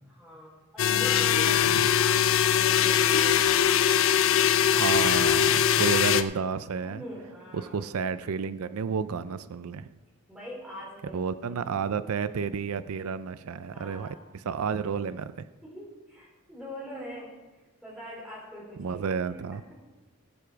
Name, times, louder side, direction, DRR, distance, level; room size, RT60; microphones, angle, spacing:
voice 1, 0.1-4.1 6.8-7.9 10.3-11.2 11.6-12.0 13.7-14.3 15.6-19.8, equal, 5° right, -5 dB, 4.0 m, -44 dB
sound 1, 0.8-6.2, left 9 dB, 65° left, 0.5 m, -22 dB
voice 2, 4.7-7.0 7.5-9.9 11.1-15.5 18.8-19.6, right 6 dB, 85° right, 13 dB, 0.4 m, -31 dB
17.0 x 7.0 x 4.6 m, 1.2 s
head